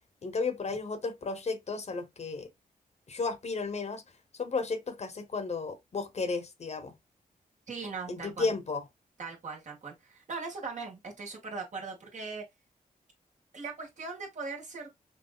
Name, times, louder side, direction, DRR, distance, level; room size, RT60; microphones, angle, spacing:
voice 1, 0.2-2.5 3.1-4.0 4.4-6.9 8.1-8.8, left 4 dB, 50° left, 1.0 m, -33 dB
voice 2, 7.7-8.5 9.2-12.4 13.5-14.9, right 4 dB, 55° right, 1.8 m, -39 dB
5.4 x 2.6 x 2.3 m
wide cardioid pair, 115°, 15 cm